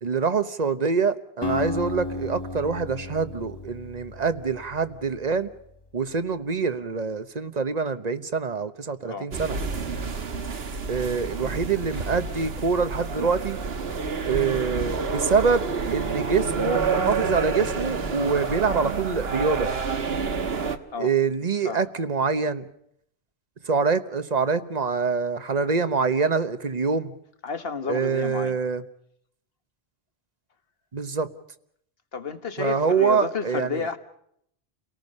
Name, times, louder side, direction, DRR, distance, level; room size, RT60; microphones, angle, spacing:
voice 1, 0.0-5.5 5.9-9.6 10.9-13.6 14.2-19.7 21.0-22.7 23.6-27.1 27.9-28.8 30.9-31.3 32.6-33.9, right 5 dB, 40° right, 1.1 m, -25 dB
Acoustic guitar, 1.4-5.5, left 2 dB, 25° left, 0.9 m, -34 dB
sound 1, 9.3-20.8, right 5 dB, 70° right, 1.4 m, -29 dB
voice 2, 27.4-28.6 32.1-34.0, left 5 dB, 65° left, 1.7 m, -31 dB
30.0 x 18.5 x 5.4 m
omnidirectional pair, 1.1 m